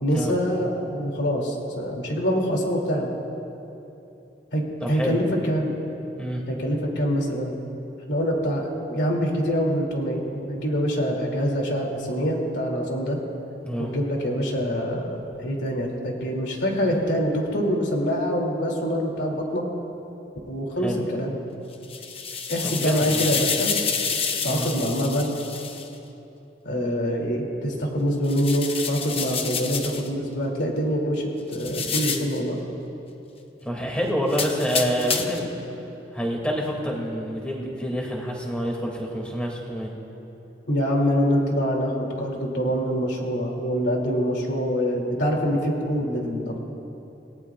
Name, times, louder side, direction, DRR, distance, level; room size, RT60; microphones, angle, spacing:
voice 1, 0.0-3.1 4.5-5.8 6.5-7.5 8.1-13.2 13.8-19.6 20.5-21.4 22.5-23.7 24.4-25.3 26.6-32.6 40.7-46.6, equal, 80° left, -1 dB, 2.8 m, -25 dB
voice 2, 4.8-5.2 6.2-6.4 13.6-13.9 20.8-21.0 22.6-23.4 24.5-24.7 33.6-35.5 36.1-39.9, equal, 5° left, -1 dB, 2.4 m, -27 dB
sound 1, 21.7-25.9 28.2-30.1 31.5-32.4 34.3-35.5, left 6 dB, 35° left, 0.9 m, -29 dB
28.0 x 19.0 x 2.5 m, 3.0 s
head